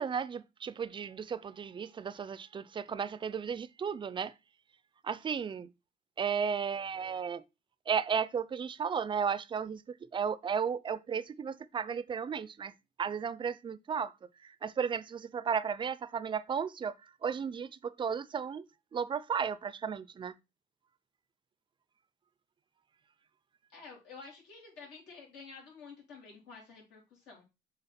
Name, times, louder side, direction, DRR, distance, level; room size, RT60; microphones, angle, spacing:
voice 1, 0.0-4.3 5.0-5.7 6.2-7.4 7.9-12.7 13.0-14.1 14.4-16.9 17.2-18.6 18.9-20.3, right 7 dB, 30° right, 0.4 m, -34 dB
voice 2, 23.7-27.4, left 4 dB, 80° left, 3.5 m, -50 dB
6.9 x 3.7 x 4.2 m
cardioid pair, 110°, 17 cm